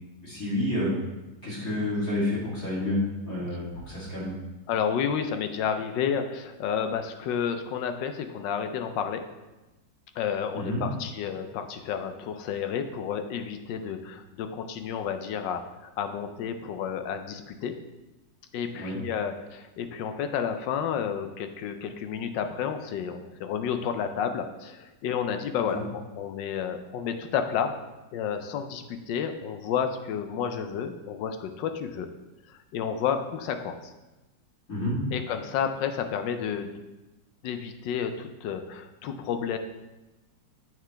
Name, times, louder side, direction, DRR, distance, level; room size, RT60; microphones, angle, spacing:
voice 1, 0.2-0.9 1.4-4.4 10.5-10.8 18.7-19.0 25.7-25.8 34.7-34.9, left 1 dB, 45° left, -9 dB, 3.0 m, -29 dB
voice 2, 4.7-9.2 10.2-17.7 18.5-25.8 26.2-27.7 28.1-32.1 32.5-33.9 35.1-36.7 37.4-39.6, left 7 dB, 80° left, 7 dB, 1.3 m, -31 dB
7.5 x 6.0 x 3.4 m, 1.1 s
omnidirectional pair, 2.0 m